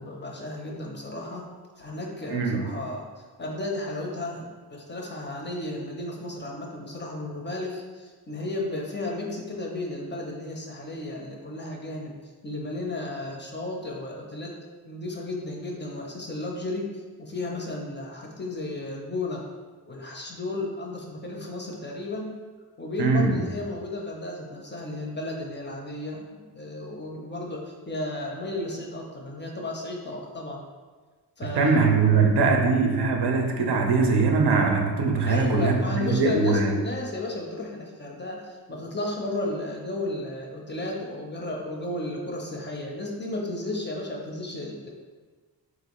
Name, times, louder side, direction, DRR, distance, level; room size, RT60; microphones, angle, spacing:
voice 1, 0.0-1.5 1.8-12.2 12.4-14.6 14.8-19.4 19.9-22.4 22.8-30.6 31.4-31.8 35.2-44.9, left 2 dB, 30° left, -1 dB, 0.4 m, -33 dB
voice 2, 2.3-2.6 23.0-23.4 31.6-36.7, right 4 dB, 75° right, 2 dB, 0.6 m, -21 dB
3.8 x 2.5 x 2.9 m, 1.4 s
wide cardioid pair, 125°, 40 cm